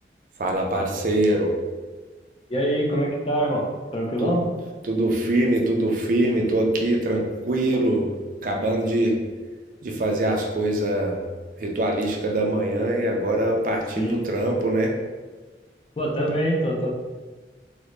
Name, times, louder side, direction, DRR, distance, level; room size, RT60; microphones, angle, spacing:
voice 1, 0.4-1.5 4.2-4.4 4.8-8.1 8.4-9.2 9.8-11.2 11.6-14.9, right 1 dB, 50° right, 1 dB, 0.4 m, -23 dB
voice 2, 2.5-3.7 3.9-4.4 14.0-14.2 16.0-16.9, equal, 30° left, -1 dB, 0.5 m, -24 dB
3.8 x 2.1 x 3.1 m, 1.3 s
head